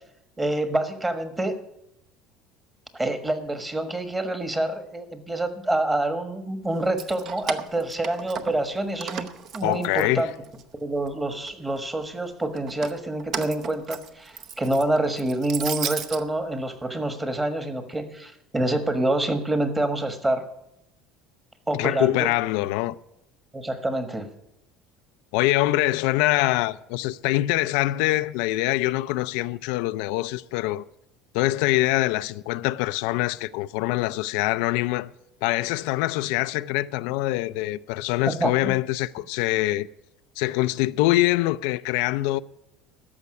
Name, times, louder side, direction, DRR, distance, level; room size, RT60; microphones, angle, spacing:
voice 1, 0.4-1.6 2.9-10.3 10.8-20.4 21.7-22.3 23.5-24.3 38.3-38.7, right 1 dB, 10° right, 1.3 m, -27 dB
Keys jangling, 6.8-8.7 9.0-10.6 11.0-11.8 12.6-16.2, right 7 dB, 40° right, 0.8 m, -35 dB
voice 2, 9.6-10.3 21.7-23.0 25.3-30.8 31.3-35.1 35.4-39.9 40.4-42.4, left 17 dB, 75° left, 0.4 m, -24 dB
13.5 x 5.8 x 9.5 m
cardioid pair, 150°, 0 cm